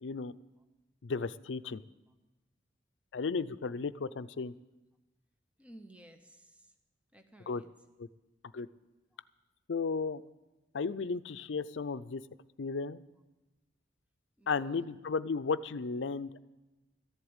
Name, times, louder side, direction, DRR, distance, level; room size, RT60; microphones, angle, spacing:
voice 1, 0.0-0.3 1.0-1.8 3.1-4.5 7.5-7.6 8.0-8.1 8.5-8.7 9.7-10.2 10.7-12.2 12.6-13.0 14.5-16.4, left 4 dB, 75° left, 14 dB, 0.5 m, -34 dB
voice 2, 5.6-6.7 7.1-7.7 14.4-14.9, right 1 dB, 5° right, 6 dB, 0.8 m, -55 dB
14.0 x 8.1 x 8.8 m, 1.1 s
head